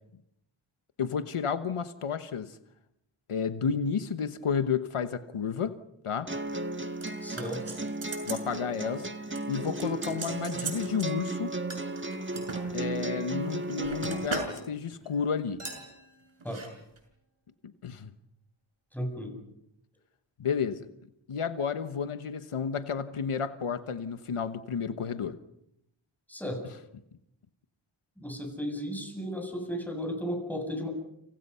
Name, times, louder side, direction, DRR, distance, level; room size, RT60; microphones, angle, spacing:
voice 1, 1.0-2.5 3.3-5.7 6.0-6.3 8.3-9.1 9.5-11.5 12.7-15.6 17.8-18.1 20.4-20.9 21.3-25.4, left 6 dB, 90° left, 10 dB, 1.3 m, -31 dB
sound 1, 6.3-14.3, right 2 dB, 25° right, 1.7 m, -35 dB
sound 2, 7.0-8.5 8.8-9.1 9.4-11.1 11.7-12.6 13.3-14.6 14.9-15.1 15.7-15.8 16.4-16.7 17.0-17.1, right 3 dB, 70° right, 6.1 m, -39 dB
voice 2, 7.2-7.6 16.4-16.6 18.9-19.3 26.3-26.6 28.2-30.9, equal, 5° left, 3 dB, 7.8 m, -34 dB
sound 3, 15.6-17.3, right 1 dB, 90° right, 7.0 m, -53 dB
30.0 x 27.5 x 5.7 m, 0.81 s
wide cardioid pair, 70°, 49 cm